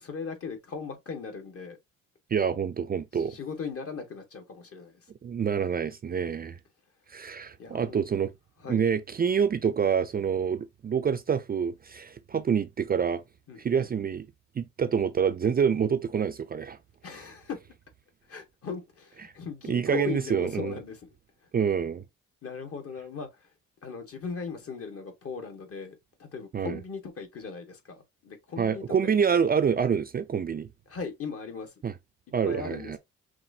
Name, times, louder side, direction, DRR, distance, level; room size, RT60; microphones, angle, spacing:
voice 1, 0.0-1.8 3.2-5.0 7.6-8.0 8.6-8.8 13.5-13.9 17.0-17.6 18.3-21.0 22.4-23.3 23.8-29.1 30.9-31.7 32.5-33.0, left 5 dB, 50° left, 1.5 m, -38 dB
voice 2, 2.3-3.4 5.2-6.6 7.1-8.3 8.7-13.2 13.6-14.3 14.6-16.8 19.7-20.8 21.5-22.0 26.5-26.8 28.6-30.7 31.8-31.9 32.3-33.0, right 7 dB, 30° right, 0.4 m, -27 dB
5.8 x 2.5 x 2.7 m
cardioid pair, 90°, 30 cm